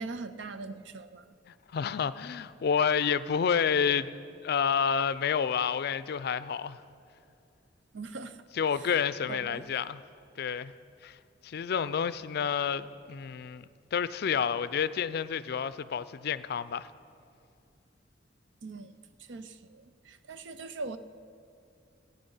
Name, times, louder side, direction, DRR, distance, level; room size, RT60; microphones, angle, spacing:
voice 1, 0.0-1.3 7.9-8.4 8.7-8.9 9.3-9.6 18.6-21.0, right 3 dB, 85° right, 0.6 m, -41 dB
voice 2, 1.7-4.1 4.4-6.8 8.6-10.0 10.4-10.7 11.0-11.2 11.4-13.7 13.9-16.9, left 7 dB, 60° left, 0.4 m, -29 dB
16.5 x 8.6 x 5.5 m
head